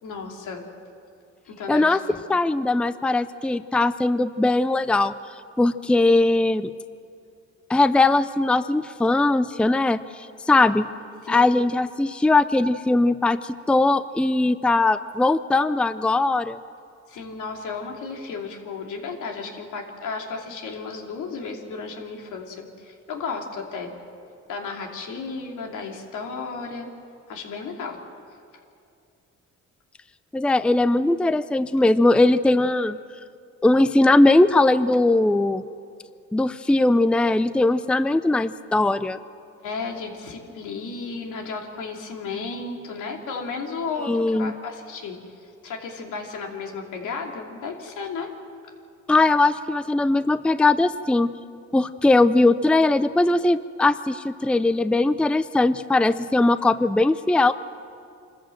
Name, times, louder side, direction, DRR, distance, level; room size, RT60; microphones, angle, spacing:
voice 1, 0.0-0.6 1.5-2.4 10.5-10.8 11.2-11.5 17.1-23.9 24.5-26.9 27.3-28.0 39.6-48.3, left 4 dB, 85° left, 1 dB, 2.9 m, -34 dB
voice 2, 1.7-2.0 2.3-5.1 5.6-6.7 7.7-10.9 11.3-16.6 30.3-33.0 33.6-35.6 36.3-39.2 44.1-44.5 49.1-51.3 51.7-57.5, left 2 dB, 5° left, 14 dB, 0.5 m, -20 dB
25.5 x 14.5 x 7.8 m, 2.5 s
cardioid pair, 90°, 30 cm